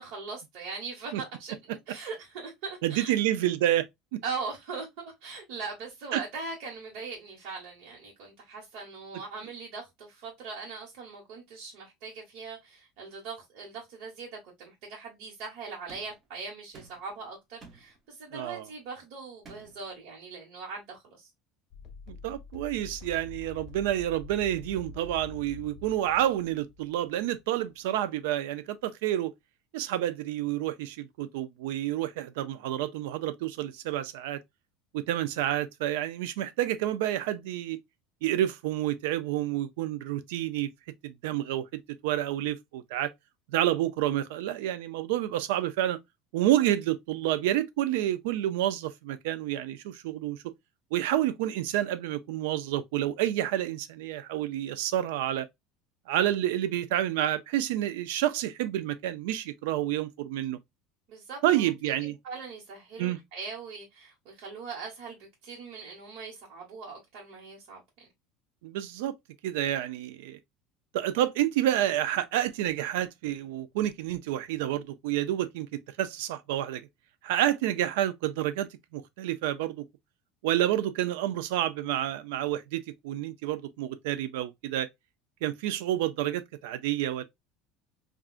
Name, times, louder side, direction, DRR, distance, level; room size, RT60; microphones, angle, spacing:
voice 1, 0.0-3.2 4.2-21.3 61.1-68.1, right 4 dB, 55° right, 1.1 m, -41 dB
voice 2, 2.8-3.8 4.1-4.2 6.1-6.2 18.3-18.6 22.1-29.3 29.7-34.4 34.9-37.8 38.2-40.7 41.0-41.7 42.0-43.1 43.5-46.0 46.3-50.4 50.9-55.5 56.1-60.6 61.4-62.1 63.0-63.2 68.6-69.1 69.4-70.4 70.9-76.8 77.2-78.7 78.9-79.9 80.4-84.9 85.4-87.2, right 12 dB, 90° right, 0.3 m, -29 dB
sound 1, 15.9-16.3 16.7-17.2 17.6-18.0 19.4-19.9, right 4 dB, 25° right, 0.7 m, -51 dB
sound 2, 21.7-27.4, left 4 dB, 40° left, 0.4 m, -46 dB
3.6 x 2.3 x 2.4 m
cardioid pair, 170°, 0 cm